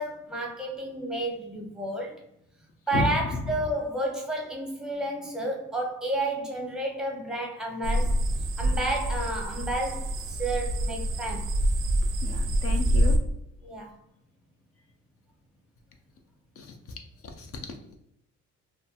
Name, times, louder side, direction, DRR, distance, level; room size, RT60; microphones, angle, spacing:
voice 1, 0.0-2.2 2.9-8.2 8.6-11.5 13.6-14.0, right 1 dB, ahead, 0.7 m, -31 dB
sound 1, 7.8-13.2, right 1 dB, 45° right, 0.4 m, -26 dB
voice 2, 12.2-13.2 16.6-16.7 17.2-17.8, left 4 dB, 50° left, 0.4 m, -32 dB
2.3 x 2.2 x 2.7 m
cardioid pair, 90°, 30 cm